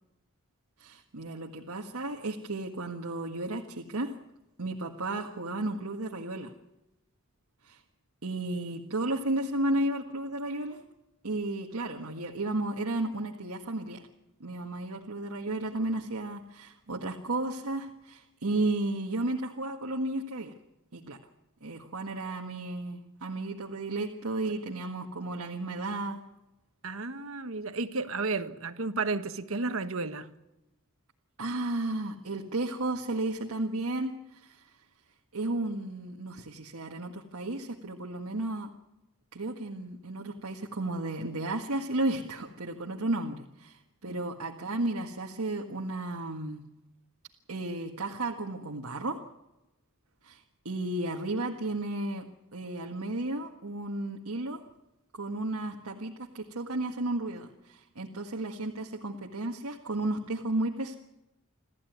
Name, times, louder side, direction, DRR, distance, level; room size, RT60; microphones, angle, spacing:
voice 1, 0.8-4.1 4.6-6.5 7.6-7.8 8.2-10.8 11.2-14.1 14.4-20.5 20.9-21.2 21.6-26.2 31.4-34.6 35.3-38.7 39.3-46.6 47.5-49.2 50.2-52.3 52.5-54.6 55.1-61.0, right 2 dB, 85° right, 1.7 m, -33 dB
voice 2, 26.8-30.3 44.0-44.2, right 3 dB, 65° right, 1.4 m, -32 dB
27.0 x 14.0 x 9.4 m
head